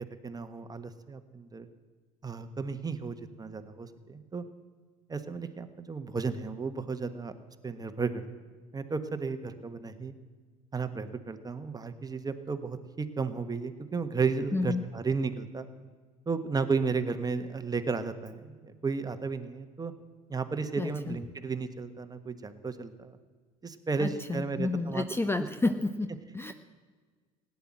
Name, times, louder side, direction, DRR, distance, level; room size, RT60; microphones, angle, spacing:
voice 1, 0.2-1.7 2.2-4.4 5.1-7.3 7.6-8.2 8.7-10.1 10.7-15.7 16.3-19.9 20.3-23.2 23.6-25.0, right 4 dB, 20° right, 9 dB, 1.3 m, -33 dB
voice 2, 14.5-14.9 20.8-21.2 24.0-26.5, left 3 dB, 15° left, 10 dB, 0.7 m, -31 dB
17.0 x 9.6 x 7.4 m, 1.5 s
hypercardioid pair, 65°, 18 cm